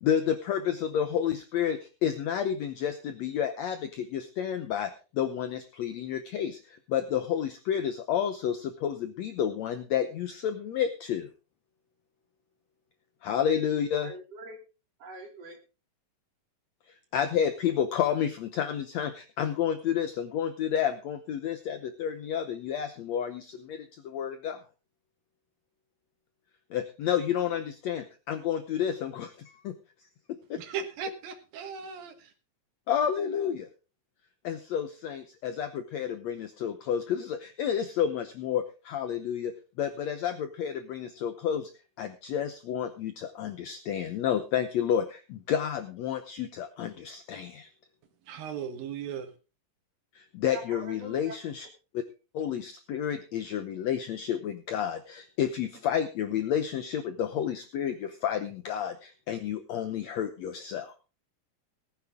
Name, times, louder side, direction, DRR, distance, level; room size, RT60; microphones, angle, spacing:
voice 1, 0.0-11.3 13.2-14.1 17.1-24.6 26.7-29.7 30.3-30.6 32.9-33.7 34.4-41.7 42.0-47.7 50.1-51.7 51.9-52.0 52.3-61.0, left 9 dB, 75° left, 9 dB, 1.6 m, -30 dB
voice 2, 14.0-14.6 15.0-15.6 50.5-51.4, right 3 dB, 45° right, 2 dB, 3.5 m, -43 dB
voice 3, 30.6-32.3 48.3-49.3, right 7 dB, 80° right, 8 dB, 3.2 m, -37 dB
18.5 x 9.9 x 3.6 m, 0.33 s
omnidirectional pair, 4.1 m